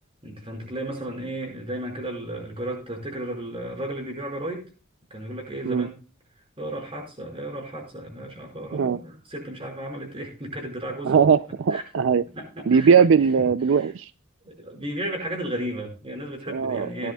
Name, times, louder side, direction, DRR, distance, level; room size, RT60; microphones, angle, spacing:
voice 1, 0.2-4.7 5.1-6.0 6.6-11.2 11.7-11.8 12.3-13.0 13.7-13.9 14.4-17.1, right 1 dB, 30° right, 4.9 m, -34 dB
voice 2, 11.0-12.2 12.7-14.1 16.5-17.1, right 6 dB, 70° right, 0.4 m, -20 dB
17.0 x 10.5 x 2.3 m
head